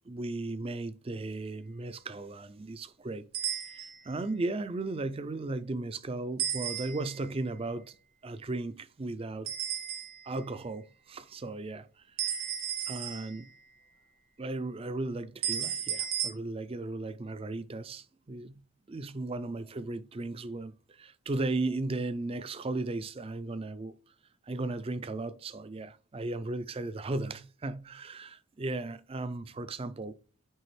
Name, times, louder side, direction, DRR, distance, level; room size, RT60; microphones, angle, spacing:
voice 1, 0.1-3.2 3.5-8.0 8.2-9.5 10.3-12.4 12.9-13.5 14.4-18.6 18.9-23.9 24.4-30.2, right 2 dB, 25° right, 0.4 m, -36 dB
sound 1, 3.3-4.1 6.4-7.3 9.5-10.4 12.2-13.6 15.4-16.3, right 9 dB, 80° right, 1.8 m, -34 dB
9.0 x 3.4 x 3.2 m
head